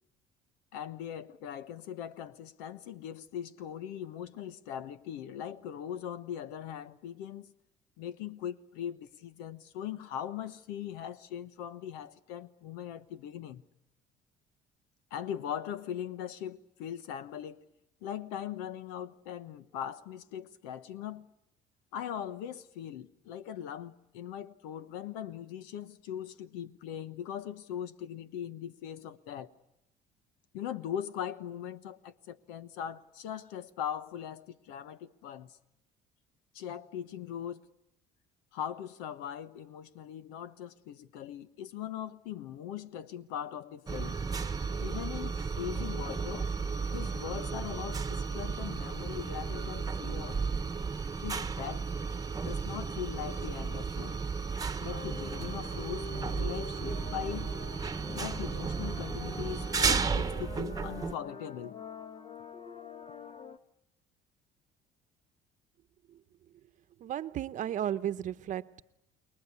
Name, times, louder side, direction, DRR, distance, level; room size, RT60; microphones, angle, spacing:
voice 1, 0.7-7.5 8.0-13.6 15.1-17.6 18.0-21.3 21.9-29.5 30.5-35.6 36.5-37.6 38.5-44.2 44.8-46.5 46.9-50.4 51.2-51.9 52.4-54.2 54.8-57.5 58.1-61.8, left 9 dB, 90° left, 1.2 m, -40 dB
sound 1, 43.9-61.1, right 5 dB, 25° right, 1.2 m, -34 dB
sound 2, 54.9-63.6, left 4 dB, 35° left, 1.5 m, -46 dB
voice 2, 67.0-68.8, right 11 dB, 55° right, 0.9 m, -34 dB
29.5 x 21.5 x 8.4 m
supercardioid pair, 85°, 15 cm